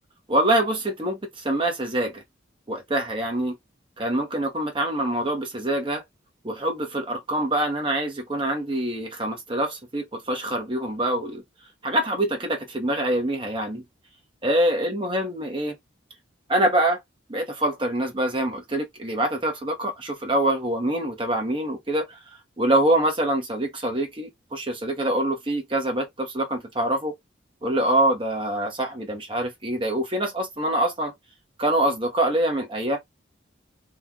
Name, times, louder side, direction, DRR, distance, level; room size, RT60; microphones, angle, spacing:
voice 1, 0.3-2.2 2.7-3.6 4.0-6.0 6.4-11.4 11.8-13.8 14.4-15.8 16.5-17.0 17.3-22.2 22.6-27.1 27.6-31.1 31.6-33.0, right 1 dB, 25° right, 1.0 m, -25 dB
2.9 x 2.4 x 3.7 m
head